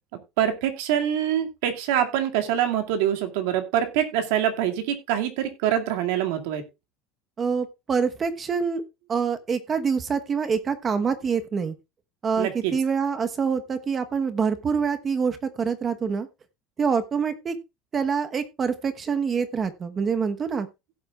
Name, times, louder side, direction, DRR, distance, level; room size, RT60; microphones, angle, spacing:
voice 1, 0.4-6.6 12.4-12.7, right 10 dB, 75° right, 2.2 m, -25 dB
voice 2, 7.4-8.8 9.1-11.7 12.2-16.3 16.8-17.5 17.9-20.7, right 6 dB, 20° right, 1.1 m, -26 dB
16.5 x 7.9 x 2.4 m
cardioid pair, 165°, 0 cm